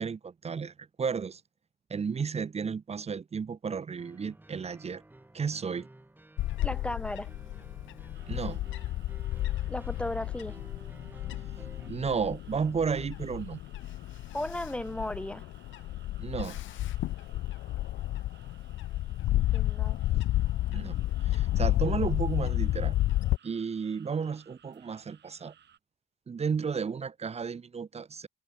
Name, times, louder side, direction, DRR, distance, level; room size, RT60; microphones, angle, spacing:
voice 1, 0.0-1.4 1.9-5.0 5.3-5.9 8.3-8.6 11.9-13.6 16.2-16.6 20.7-21.0 21.2-23.0 23.4-25.5 26.3-28.3, right 6 dB, 30° right, 0.8 m, -33 dB
sound 1, 4.0-11.9, right 1 dB, 10° right, 1.7 m, -52 dB
Bird / Wind, 6.4-23.4, left 15 dB, 75° left, 0.6 m, -31 dB
voice 2, 6.6-7.3 9.7-10.6 14.3-15.5 19.5-20.0, left 1 dB, 5° left, 1.0 m, -35 dB
sound 2, 8.1-25.8, right 9 dB, 60° right, 7.4 m, -61 dB
cardioid pair, 90°, 20 cm